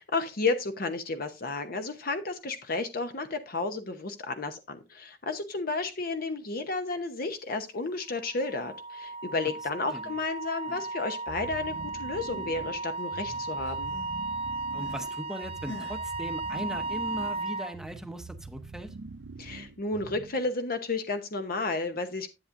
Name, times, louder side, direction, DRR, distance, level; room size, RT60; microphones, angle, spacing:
voice 1, 0.0-13.9 19.4-22.3, left 3 dB, 55° left, 0.9 m, -32 dB
Wind instrument woodwind instrument, 8.3-17.7, right 3 dB, 30° right, 0.6 m, -35 dB
sound 1, 10.4-11.0 11.3-12.7 13.0-15.2 15.6-16.0, left 2 dB, 80° left, 5.2 m, -47 dB
sound 2, 11.3-20.5, right 3 dB, 70° right, 0.6 m, -45 dB
voice 2, 14.7-19.0, equal, 5° right, 0.8 m, -39 dB
10.5 x 8.4 x 2.6 m
head